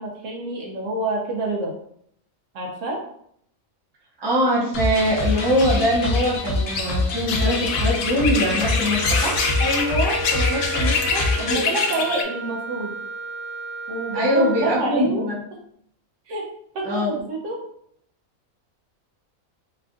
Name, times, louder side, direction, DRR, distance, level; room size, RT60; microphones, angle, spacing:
voice 1, 0.0-1.7 2.5-3.0 9.6-12.9 13.9-15.3 16.3-16.4 16.7-17.6, right 2 dB, 70° right, -1 dB, 1.0 m, -27 dB
voice 2, 4.2-9.4 11.3-11.6 14.1-15.4 16.8-17.2, equal, 20° right, -5 dB, 0.8 m, -22 dB
sound 1, 4.7-11.6, left 2 dB, 55° left, 0.9 m, -25 dB
sound 2, 4.9-12.2, left 4 dB, 85° left, 1.0 m, -27 dB
Wind instrument woodwind instrument, 8.4-14.9, right 1 dB, 90° right, 1.4 m, -34 dB
3.3 x 2.5 x 3.6 m, 0.68 s
omnidirectional pair, 1.4 m